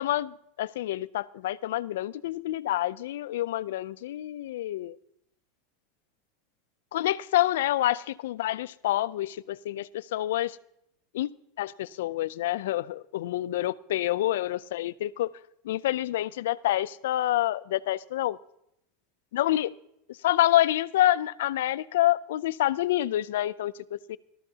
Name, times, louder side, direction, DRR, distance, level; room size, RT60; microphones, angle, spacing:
voice 1, 0.0-5.0 6.9-10.6 11.1-11.3 11.6-15.3 15.6-18.4 19.3-19.7 20.2-24.2, left 14 dB, 85° left, 17 dB, 0.4 m, -27 dB
19.0 x 13.0 x 2.8 m, 0.78 s
supercardioid pair, 145°, 0 cm